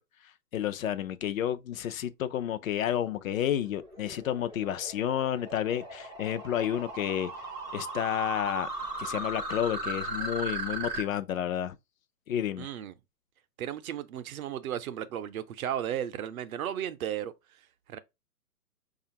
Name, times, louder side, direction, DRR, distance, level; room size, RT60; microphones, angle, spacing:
voice 1, 0.5-7.3 7.7-8.7 9.0-11.8 12.3-12.7, left 10 dB, 60° left, 0.5 m, -30 dB
sound 1, 3.1-11.0, right 2 dB, 10° right, 0.4 m, -37 dB
voice 2, 12.6-12.9 13.6-17.3 17.9-18.0, right 10 dB, 65° right, 0.6 m, -34 dB
4.8 x 2.4 x 2.8 m
hypercardioid pair, 135°, 47 cm